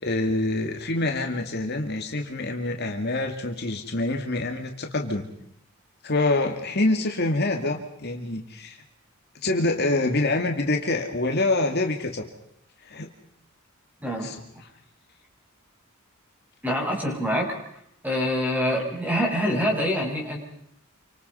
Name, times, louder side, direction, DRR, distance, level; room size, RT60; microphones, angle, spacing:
voice 1, 0.0-5.3 6.0-8.8 9.4-12.3 12.8-13.1 14.2-14.7, left 2 dB, 50° left, 3 dB, 2.3 m, -26 dB
voice 2, 16.6-17.5 18.0-20.4, equal, 10° right, 0 dB, 6.6 m, -25 dB
28.5 x 25.5 x 5.6 m, 0.72 s
head